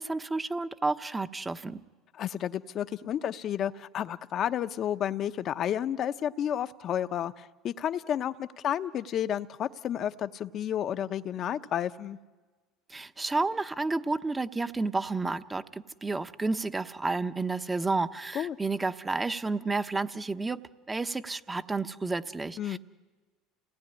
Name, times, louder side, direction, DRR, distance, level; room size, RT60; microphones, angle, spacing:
voice 1, 0.0-1.8 12.9-20.6 20.9-22.8, right 3 dB, 15° right, 11 dB, 1.0 m, -31 dB
voice 2, 2.2-12.2 18.3-18.6 22.6-22.8, left 10 dB, 45° left, 10 dB, 0.9 m, -31 dB
29.5 x 19.0 x 9.9 m, 1.3 s
supercardioid pair, 105°, 0 cm